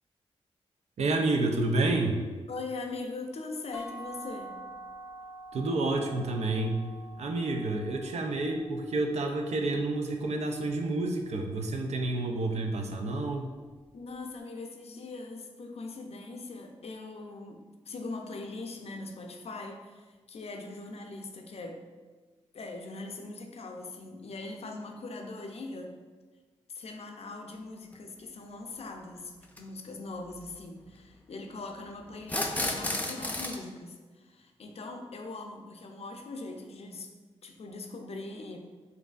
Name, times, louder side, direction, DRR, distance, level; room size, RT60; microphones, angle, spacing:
voice 1, 1.0-2.2 5.5-6.9 7.2-13.5, right 2 dB, 70° right, 3 dB, 0.5 m, -29 dB
voice 2, 2.5-4.6 13.9-21.8 22.5-26.0 26.7-37.1 37.4-38.6, left 3 dB, 60° left, 3 dB, 0.5 m, -41 dB
sound 1, 3.7-9.5, right 1 dB, 10° right, 1.3 m, -47 dB
sound 2, 27.9-28.0 29.4-29.6 32.2-33.6, left 1 dB, 15° left, 0.6 m, -31 dB
4.6 x 2.6 x 2.4 m, 1.4 s
supercardioid pair, 45°, 12 cm